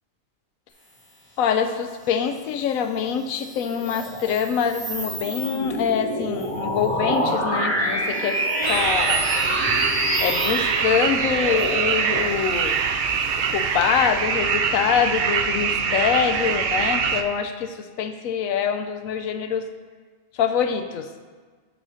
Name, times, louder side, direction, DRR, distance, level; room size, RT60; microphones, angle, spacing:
voice 1, 1.4-9.2 10.2-12.8 13.5-19.7 20.3-21.1, left 7 dB, 80° left, 8 dB, 1.0 m, -25 dB
sound 1, 3.1-14.0, equal, 20° left, 1.4 m, -28 dB
sound 2, 8.6-17.2, right 6 dB, 65° right, 0.6 m, -24 dB
8.4 x 4.1 x 5.0 m, 1.5 s
omnidirectional pair, 1.4 m